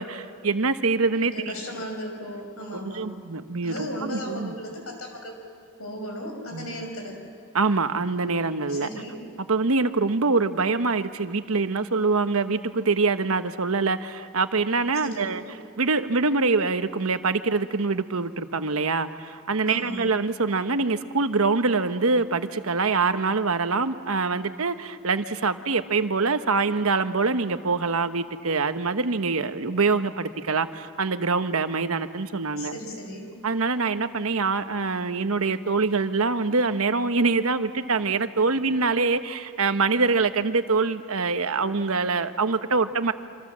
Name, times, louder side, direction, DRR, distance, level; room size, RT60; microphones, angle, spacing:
voice 1, 0.0-1.3 2.7-4.6 6.5-6.7 7.5-8.9 9.5-15.4 15.8-32.7 33.4-43.1, right 4 dB, 80° right, 10 dB, 1.1 m, -24 dB
voice 2, 1.2-3.1 3.6-5.3 5.8-7.2 8.7-9.2 14.9-15.4 19.6-20.1 32.6-33.3, equal, 80° left, 2 dB, 6.3 m, -36 dB
27.5 x 26.5 x 7.5 m, 2.3 s
head